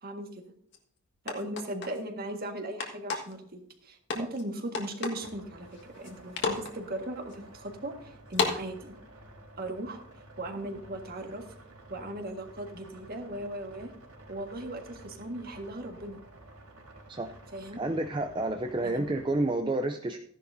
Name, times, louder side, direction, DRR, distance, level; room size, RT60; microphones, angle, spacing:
voice 1, 0.0-0.4 1.2-9.0 9.6-10.0 10.4-11.4 11.9-13.9 14.3-16.2 17.5-17.8 18.8-19.1, right 1 dB, 45° right, 4 dB, 1.7 m, -38 dB
sound 1, 0.7-0.8 1.3-2.0 2.8-3.4 4.1-4.4 4.7-5.3 5.7-6.1 6.4-6.7 7.3-7.4 8.3-8.6, left 4 dB, 55° left, 1.7 m, -31 dB
sound 2, 5.2-19.6, right 1 dB, 85° right, 3.7 m, -52 dB
voice 2, 17.8-20.2, right 2 dB, 20° right, 6 dB, 0.4 m, -30 dB
15.5 x 10.5 x 2.7 m, 0.66 s
head